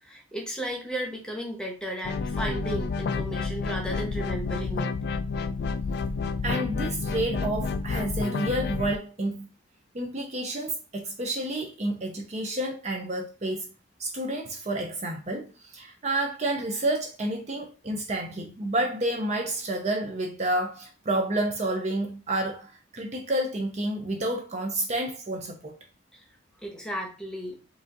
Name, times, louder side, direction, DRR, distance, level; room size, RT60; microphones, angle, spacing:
voice 1, 0.0-4.9 26.1-26.2 26.6-27.6, right 1 dB, 5° left, 1.0 m, -34 dB
sound 1, 2.0-9.0, left 4 dB, 55° left, 0.3 m, -29 dB
voice 2, 6.4-9.5 9.9-13.7 14.0-25.7, right 1 dB, 35° right, 0.6 m, -30 dB
4.9 x 2.6 x 3.8 m
head